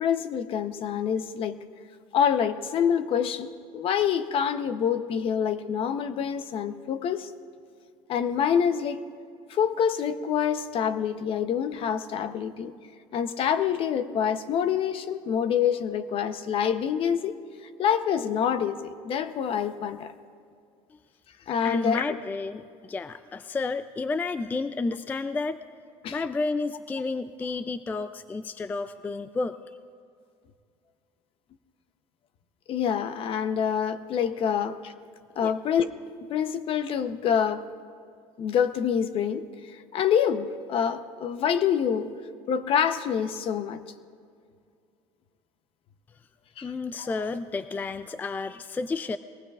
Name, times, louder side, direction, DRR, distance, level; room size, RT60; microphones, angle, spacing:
voice 1, 0.0-1.6 2.1-7.3 8.1-9.1 9.5-12.7 13.1-17.4 17.8-20.1 21.5-22.2 26.0-26.2 32.7-34.9 35.4-37.7 38.4-39.5 39.9-42.1 42.5-43.8 46.6-46.7 47.0-47.1, left 8 dB, 50° left, 11 dB, 0.8 m, -26 dB
voice 2, 21.6-25.6 26.1-29.6 35.4-35.5 46.6-49.2, left 3 dB, 15° left, 12 dB, 0.3 m, -31 dB
22.5 x 18.5 x 2.4 m, 2.3 s
cardioid pair, 125°, 12 cm